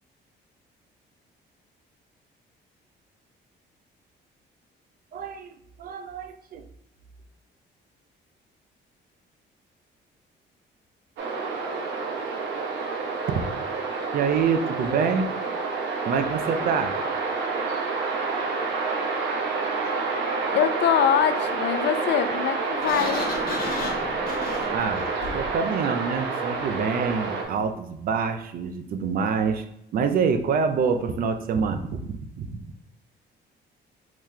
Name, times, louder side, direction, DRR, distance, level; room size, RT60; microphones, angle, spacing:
voice 1, 5.1-6.7 14.1-15.3 16.0-16.9 24.7-25.1 25.3-29.7 29.9-32.6, right 6 dB, 50° right, 7 dB, 0.5 m, -26 dB
sound 1, 11.2-27.4, right 4 dB, 75° right, 0.9 m, -28 dB
voice 2, 20.5-23.3, left 9 dB, 70° left, 9 dB, 0.5 m, -23 dB
Sliding door, 22.8-25.6, left 3 dB, 50° left, 1.2 m, -33 dB
4.7 x 3.8 x 2.8 m, 0.78 s
cardioid pair, 160°, 19 cm